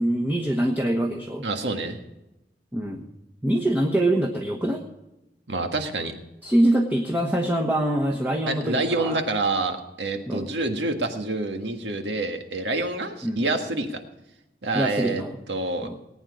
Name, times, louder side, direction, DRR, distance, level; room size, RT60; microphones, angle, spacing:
voice 1, 0.0-1.4 2.7-3.0 3.4-4.8 6.4-9.2 10.3-10.4 13.2-13.4 14.7-15.3 15.8-16.0, right 1 dB, 10° right, 0 dB, 1.1 m, -24 dB
voice 2, 1.4-2.0 5.5-6.1 8.5-14.0 14.6-15.2 15.5-15.9, right 2 dB, 80° right, 5 dB, 1.7 m, -27 dB
19.5 x 9.1 x 4.9 m, 0.93 s
head